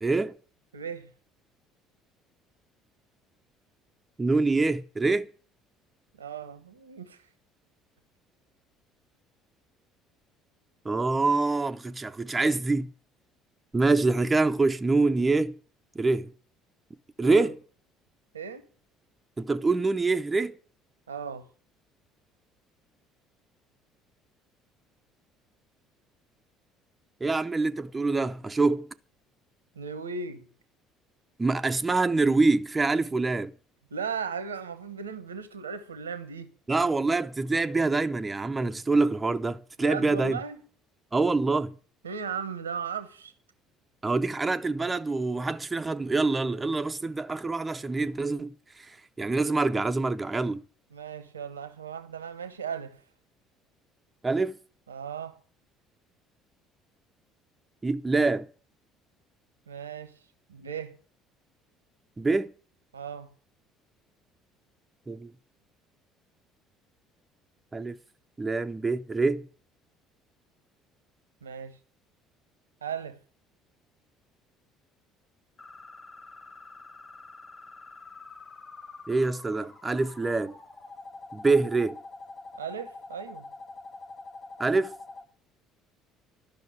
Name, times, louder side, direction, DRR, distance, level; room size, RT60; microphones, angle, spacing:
voice 1, 0.0-0.3 4.2-5.3 10.8-12.9 13.7-15.5 16.0-16.3 17.2-17.6 19.4-20.5 27.2-28.9 31.4-33.5 36.7-40.4 41.1-41.7 44.0-48.5 48.9-50.6 54.2-54.6 57.8-58.5 62.2-62.5 65.1-65.3 67.7-68.0 68.4-69.5 79.1-80.5 81.3-82.0 84.6-84.9, right 3 dB, 20° right, 0.7 m, -25 dB
voice 2, 0.7-1.1 6.2-7.2 17.2-17.5 18.3-18.7 21.1-21.4 29.7-30.5 33.9-36.5 39.8-40.6 42.0-43.3 50.9-53.0 54.9-55.4 59.7-60.1 60.5-60.9 62.9-63.3 71.4-71.8 72.8-73.2 82.5-83.5, right 6 dB, 90° right, 1.1 m, -36 dB
sound 1, 75.6-85.2, left 3 dB, 35° left, 2.8 m, -46 dB
12.0 x 6.0 x 8.6 m
hypercardioid pair, 60°, 0 cm